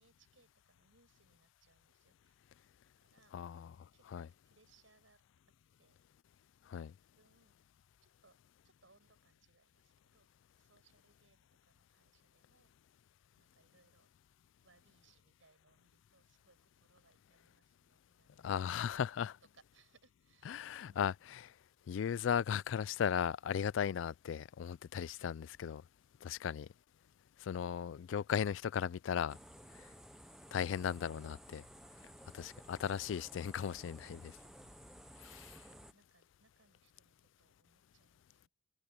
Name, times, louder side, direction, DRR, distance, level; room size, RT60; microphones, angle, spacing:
voice 1, 0.0-2.4 3.0-3.3 3.9-5.2 5.8-6.0 6.8-7.6 8.0-8.4 8.6-10.3 10.6-12.7 13.3-14.1 14.6-21.2 35.4-38.5, right 3 dB, 85° right, 8.0 m, -71 dB
voice 2, 3.3-4.3 6.7-6.9 18.4-19.3 20.5-21.4 21.9-25.8 26.2-26.7 27.4-29.4 30.5-31.6 32.3-34.3 35.2-35.6, left 8 dB, 80° left, 0.3 m, -37 dB
sound 1, 29.3-35.9, equal, 5° right, 0.4 m, -56 dB
head